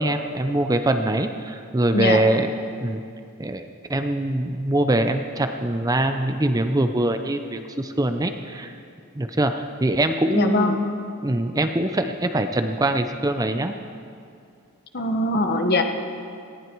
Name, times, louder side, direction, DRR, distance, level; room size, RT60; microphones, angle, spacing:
voice 1, 0.0-2.5 2.8-3.0 3.4-8.7 9.2-10.8 11.2-13.7, right 1 dB, 15° right, 7 dB, 0.6 m, -23 dB
voice 2, 10.3-10.9 14.9-15.8, left 2 dB, 45° left, 5 dB, 1.2 m, -22 dB
18.5 x 15.0 x 4.6 m, 2.4 s
head